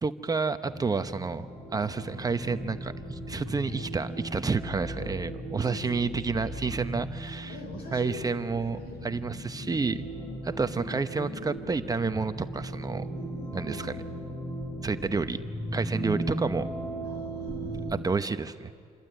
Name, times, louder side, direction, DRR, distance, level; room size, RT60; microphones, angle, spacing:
voice 1, 0.0-7.6 7.9-8.8 9.0-10.1 10.4-13.1 13.5-13.9 14.8-15.4 15.7-16.7 17.9-18.7, right 4 dB, 20° right, 9 dB, 0.9 m, -30 dB
sound 1, 0.7-18.0, equal, 20° left, 3.6 m, -37 dB
voice 2, 5.0-6.2 7.5-8.3 8.6-9.3 13.1-13.9 17.0-17.9, left 2 dB, 70° left, 4 dB, 6.3 m, -45 dB
27.0 x 22.0 x 9.1 m, 2.3 s
cardioid pair, 110°, 17 cm